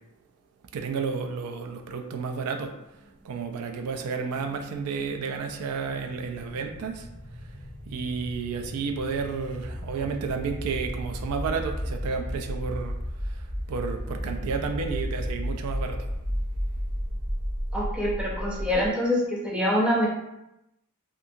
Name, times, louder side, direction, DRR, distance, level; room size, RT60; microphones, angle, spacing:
voice 1, 0.7-2.7 3.2-7.1 7.9-13.0 13.3-16.1, right 5 dB, 85° right, 5 dB, 0.4 m, -31 dB
sound 1, 3.0-18.9, equal, 55° right, 0.8 m, -34 dB
voice 2, 17.7-20.1, left 1 dB, 5° right, -5 dB, 0.6 m, -25 dB
2.7 x 2.5 x 2.6 m, 0.89 s
head